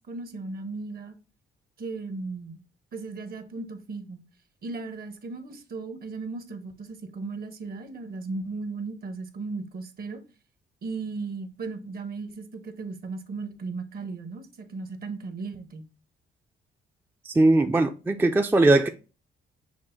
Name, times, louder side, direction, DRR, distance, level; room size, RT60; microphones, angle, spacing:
voice 1, 0.1-1.1 1.8-2.6 2.9-4.2 4.6-10.2 10.8-15.8, right 3 dB, 50° right, 1.0 m, -36 dB
voice 2, 17.3-18.9, right 2 dB, 10° right, 0.4 m, -20 dB
6.3 x 2.1 x 3.8 m
cardioid pair, 90°, 20 cm